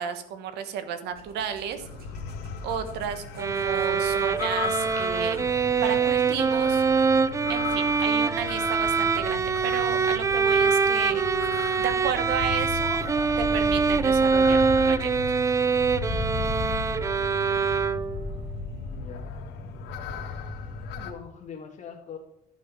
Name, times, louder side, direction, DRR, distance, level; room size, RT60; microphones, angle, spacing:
voice 1, 0.0-1.9 2.6-5.5 5.8-6.8 7.5-11.2 11.8-13.0 13.4-15.1, right 8 dB, 80° right, 10 dB, 1.3 m, -33 dB
sound 1, 1.1-6.0, right 3 dB, 60° right, 2.5 m, -53 dB
sound 2, 1.8-21.1, left 4 dB, 85° left, 1.5 m, -35 dB
sound 3, 3.4-18.3, right 5 dB, 20° right, 0.4 m, -24 dB
voice 2, 17.2-17.7 18.8-19.3 21.0-22.2, left 7 dB, 40° left, -3 dB, 1.7 m, -43 dB
11.5 x 6.2 x 5.9 m, 0.83 s
cardioid pair, 110°, 17 cm